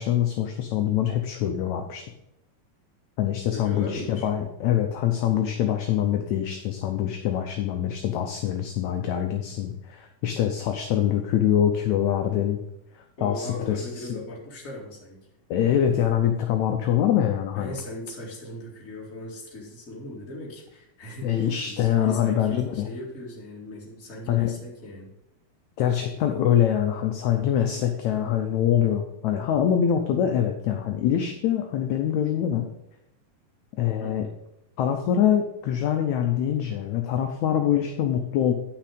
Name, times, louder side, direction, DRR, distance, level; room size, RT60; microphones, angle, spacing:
voice 1, 0.0-2.0 3.2-12.6 13.2-13.8 14.1-14.2 15.5-17.8 21.2-22.9 24.3-24.5 25.8-32.7 33.8-34.3 34.8-38.5, left 10 dB, 75° left, 4 dB, 1.8 m, -24 dB
voice 2, 3.5-4.3 13.2-15.2 17.5-25.1 34.0-34.2, left 1 dB, 25° left, -3 dB, 2.2 m, -38 dB
9.6 x 5.9 x 5.0 m, 0.87 s
omnidirectional pair, 4.0 m